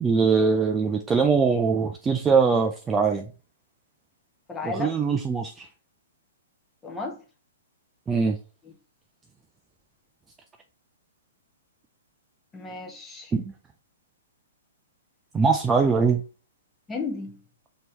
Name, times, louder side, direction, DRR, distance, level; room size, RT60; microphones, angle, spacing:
voice 1, 0.0-3.3 4.6-5.7 8.1-8.4 13.3-13.4 15.3-16.2, right 5 dB, 15° right, 0.3 m, -22 dB
voice 2, 4.5-4.9 6.8-7.2 12.5-13.3 16.9-17.4, left 3 dB, 15° left, 0.9 m, -33 dB
4.3 x 2.9 x 3.2 m
hypercardioid pair, 150°, 0 cm